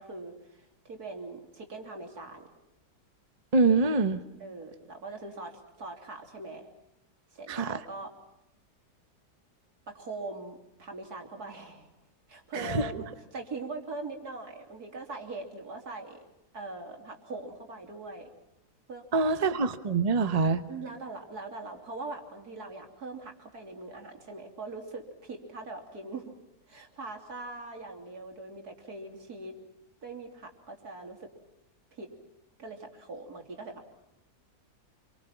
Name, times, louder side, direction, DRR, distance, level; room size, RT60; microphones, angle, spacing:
voice 1, 0.0-2.5 4.4-6.7 7.3-8.1 9.9-11.9 12.3-16.2 16.5-18.3 18.9-19.3 20.7-26.3 26.7-29.5 30.0-31.3 31.9-32.1 32.6-33.9, right 3 dB, 65° right, 3 dB, 3.7 m, -41 dB
voice 2, 3.5-4.2 7.5-7.8 12.5-13.0 19.1-20.6, right 4 dB, 25° right, 10 dB, 1.0 m, -25 dB
28.5 x 24.0 x 5.9 m, 0.92 s
omnidirectional pair, 1.8 m